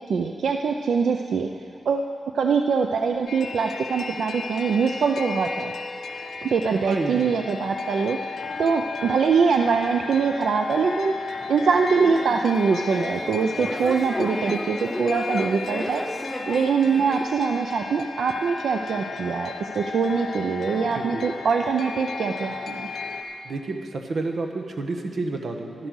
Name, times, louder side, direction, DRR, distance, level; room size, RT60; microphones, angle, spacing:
voice 1, 0.1-1.5 1.9-5.7 6.4-8.3 8.6-11.1 11.5-16.0 16.5-22.9, right 5 dB, 75° right, 4 dB, 0.6 m, -23 dB
sound 1, 3.3-23.2, left 4 dB, 85° left, 1.4 m, -34 dB
voice 2, 6.9-7.4 20.9-21.2 23.4-25.9, right 3 dB, 50° right, 3 dB, 1.2 m, -30 dB
sound 2, 12.0-17.3, left 1 dB, 5° left, 0.6 m, -33 dB
12.5 x 12.0 x 6.4 m, 2.2 s
wide cardioid pair, 175°, 0 cm